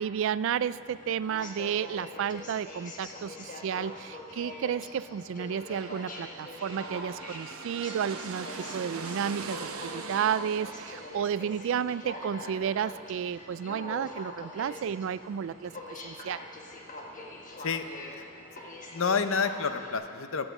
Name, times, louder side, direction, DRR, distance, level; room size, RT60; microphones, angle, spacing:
voice 1, 0.0-15.7 16.0-16.4, right 8 dB, 65° right, 17 dB, 0.3 m, -32 dB
Aircraft, 0.5-19.9, left 2 dB, 40° left, 1.4 m, -43 dB
sound 1, 5.3-13.0, right 4 dB, 85° right, 0.9 m, -43 dB
voice 2, 17.6-18.2 18.9-20.5, left 5 dB, 65° left, 9 dB, 0.7 m, -29 dB
12.0 x 9.0 x 8.1 m, 2.5 s
head